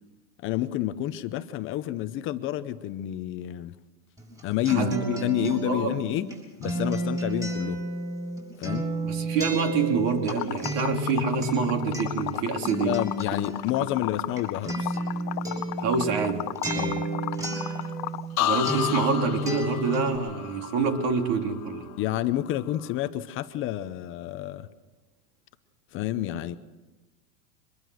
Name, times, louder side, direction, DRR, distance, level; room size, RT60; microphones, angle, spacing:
voice 1, 0.4-3.7 4.4-6.3 6.6-7.8 8.6-8.9 12.8-15.0 16.8-17.0 22.0-24.7 25.9-26.6, left 13 dB, 25° left, 11 dB, 0.7 m, -29 dB
Acoustic guitar, 4.2-18.4 18.6-20.2, right 1 dB, 5° right, 6.5 m, -32 dB
voice 2, 5.3-6.0 9.0-13.0 15.8-16.5 18.4-21.9, right 5 dB, 50° right, 4 dB, 3.5 m, -26 dB
Liquid, 10.3-18.3, left 16 dB, 85° left, 0.9 m, -34 dB
sound 1, 18.4-22.2 22.5-23.0, left 14 dB, 65° left, 1.3 m, -32 dB
24.0 x 22.0 x 6.5 m, 1.1 s
supercardioid pair, 150°, 49 cm